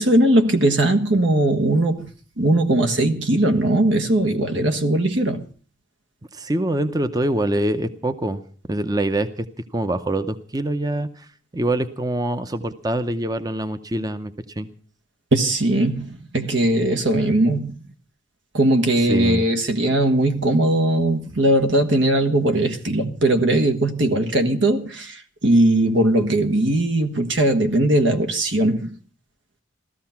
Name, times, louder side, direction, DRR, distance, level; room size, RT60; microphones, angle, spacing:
voice 1, 0.0-2.1 2.4-5.4 15.3-17.8 18.5-28.9, right 1 dB, 80° right, 1.6 m, -19 dB
voice 2, 6.3-8.4 8.7-9.5 9.7-11.3 11.5-14.7 19.1-19.4, right 1 dB, 20° right, 0.7 m, -24 dB
15.5 x 14.0 x 5.8 m
head